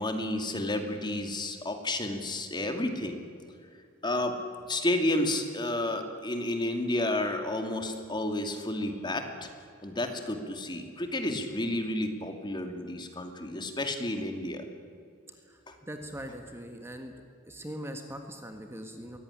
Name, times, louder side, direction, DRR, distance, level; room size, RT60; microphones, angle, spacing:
voice 1, 0.0-3.2 4.0-4.4 4.7-9.5 9.8-14.6 15.7-15.8, left 1 dB, 25° left, 5 dB, 2.4 m, -31 dB
voice 2, 15.5-17.1 17.5-19.2, equal, 15° right, 5 dB, 1.6 m, -41 dB
23.0 x 18.0 x 9.9 m, 2.5 s
head